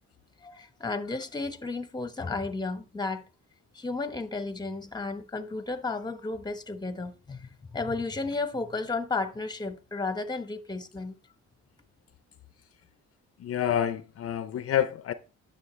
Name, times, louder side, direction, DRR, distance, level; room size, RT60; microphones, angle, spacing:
voice 1, 0.4-3.3 3.7-11.1, left 3 dB, 15° left, 1.0 m, -33 dB
voice 2, 13.4-15.1, left 10 dB, 50° left, 0.6 m, -28 dB
9.6 x 6.6 x 3.1 m
cardioid pair, 90°, 30 cm